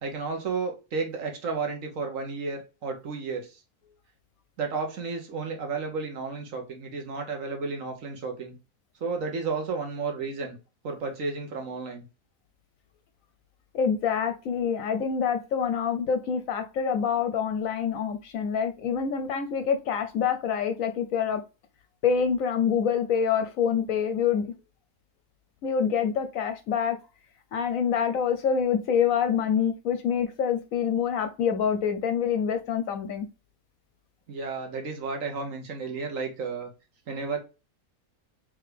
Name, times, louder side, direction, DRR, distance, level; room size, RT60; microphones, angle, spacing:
voice 1, 0.0-3.6 4.6-8.5 9.0-10.6 10.8-12.0 34.3-36.7 37.1-37.4, right 4 dB, 60° right, 1.3 m, -32 dB
voice 2, 13.7-21.4 22.0-24.5 25.6-27.0 27.5-33.2, left 7 dB, 70° left, 1.0 m, -26 dB
3.6 x 3.4 x 3.3 m
omnidirectional pair, 1.6 m